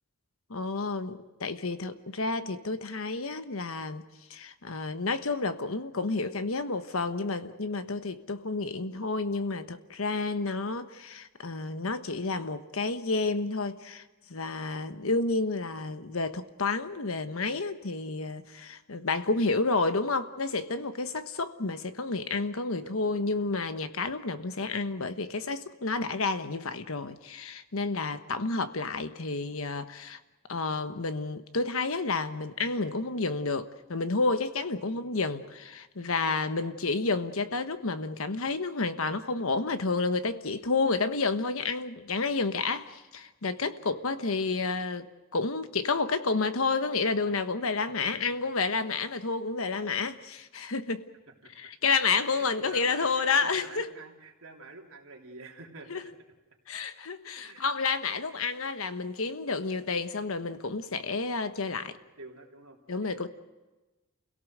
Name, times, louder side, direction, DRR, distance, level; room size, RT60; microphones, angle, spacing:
voice 1, 0.5-14.0 14.3-30.2 30.5-51.1 51.6-53.9 55.9-56.0 56.7-61.9 62.9-63.3, left 3 dB, 75° left, 1.2 m, -30 dB
voice 2, 22.8-23.5 34.9-35.3 36.4-36.7 43.7-44.0 51.3-51.5 52.1-56.1 57.4-57.7 58.2-58.4 62.2-63.3, right 3 dB, 85° right, 3.2 m, -48 dB
29.0 x 17.5 x 6.6 m
head